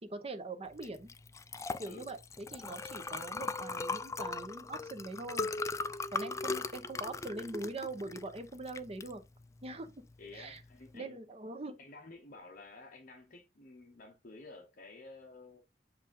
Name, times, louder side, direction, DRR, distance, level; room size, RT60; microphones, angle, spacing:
voice 1, 0.0-1.1 1.8-5.5 6.1-9.2 9.6-9.9 10.3-10.6 10.9-11.8, right 2 dB, 35° right, 0.8 m, -42 dB
Liquid, 0.8-10.9, left 3 dB, 15° left, 0.3 m, -39 dB
voice 2, 10.2-11.2 11.8-15.6, left 3 dB, 50° left, 0.9 m, -52 dB
7.7 x 2.6 x 5.2 m
head